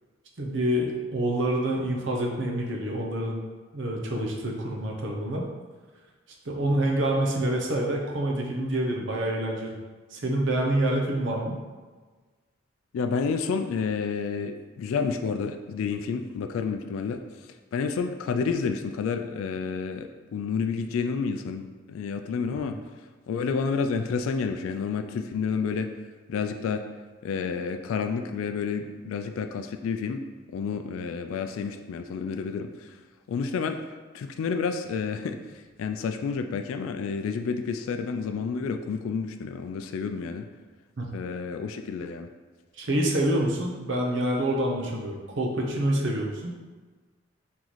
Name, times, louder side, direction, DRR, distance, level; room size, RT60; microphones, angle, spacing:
voice 1, 0.4-3.4 3.7-5.4 6.5-9.8 10.1-11.6 22.6-22.7 41.0-41.1 42.8-46.5, right 1 dB, 65° right, 0 dB, 0.7 m, -27 dB
voice 2, 12.9-17.2 17.7-22.8 23.3-25.9 26.3-26.8 27.2-30.2 30.5-32.9 33.3-33.8 34.1-40.5 41.1-42.3, left 5 dB, 85° left, 8 dB, 0.3 m, -30 dB
3.7 x 3.0 x 4.0 m, 1.4 s
head